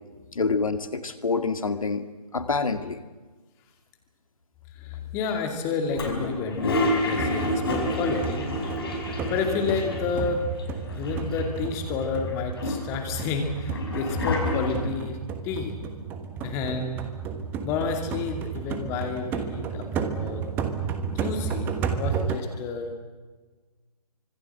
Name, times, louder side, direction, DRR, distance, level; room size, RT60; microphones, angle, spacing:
voice 1, 0.3-3.0, left 4 dB, 55° left, 9 dB, 2.1 m, -27 dB
voice 2, 4.8-8.4 9.0-10.4 11.0-15.2 15.4-15.8 16.4-17.1 17.6-20.4 21.1-22.9, left 5 dB, 15° left, 4 dB, 2.5 m, -30 dB
Toilet flush, 5.9-10.3 10.6-10.7 10.9-11.7 12.2-15.1, left 1 dB, 35° left, 5.2 m, -29 dB
sound 1, 7.2-22.4, right 6 dB, 10° right, 1.3 m, -32 dB
25.5 x 25.5 x 7.8 m, 1.3 s
figure-of-eight pair, 150°, 20 cm